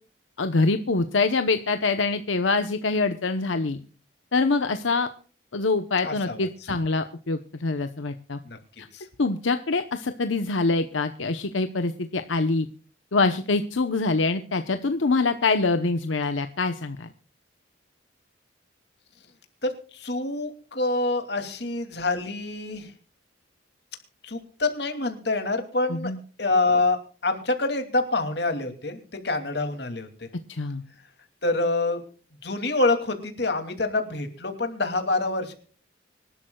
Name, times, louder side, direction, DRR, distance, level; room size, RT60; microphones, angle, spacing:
voice 1, 0.4-3.8 4.3-5.1 5.5-8.4 8.8-8.9 9.2-12.7 13.1-17.1 25.9-26.2 30.5-30.8, left 3 dB, 85° left, 8 dB, 0.9 m, -25 dB
voice 2, 6.0-6.8 8.4-8.6 8.9-9.0 19.6-22.9 24.2-26.1 26.4-30.3 31.4-32.0 32.4-35.5, left 2 dB, 60° left, 6 dB, 2.6 m, -26 dB
25.0 x 12.0 x 2.3 m, 0.41 s
head